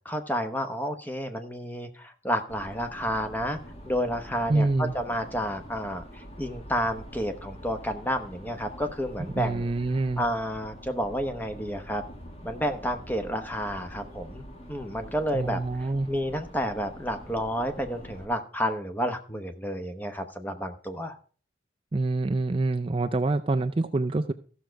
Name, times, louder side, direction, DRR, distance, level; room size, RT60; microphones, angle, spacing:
voice 1, 0.0-3.6 3.8-9.7 10.2-12.0 12.4-21.2, equal, 10° left, 7 dB, 1.0 m, -30 dB
sound 1, 2.5-18.2, equal, 35° left, 1.7 m, -45 dB
voice 2, 4.5-4.9 9.3-10.2 15.3-16.1 21.9-24.3, right 2 dB, 30° right, 8 dB, 0.4 m, -26 dB
14.0 x 6.4 x 4.6 m, 0.41 s
head